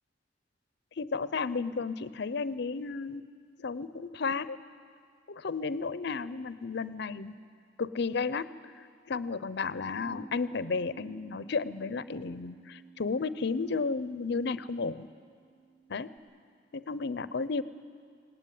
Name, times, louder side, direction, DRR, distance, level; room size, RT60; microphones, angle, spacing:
voice 1, 1.0-3.3 3.6-4.6 5.3-7.3 7.8-8.5 9.1-15.1 15.9-16.1 16.7-17.6, left 4 dB, 65° left, 15 dB, 0.6 m, -33 dB
Bass guitar, 9.9-16.2, right 6 dB, 15° left, 1.3 m, -54 dB
18.5 x 18.5 x 9.3 m, 2.1 s
head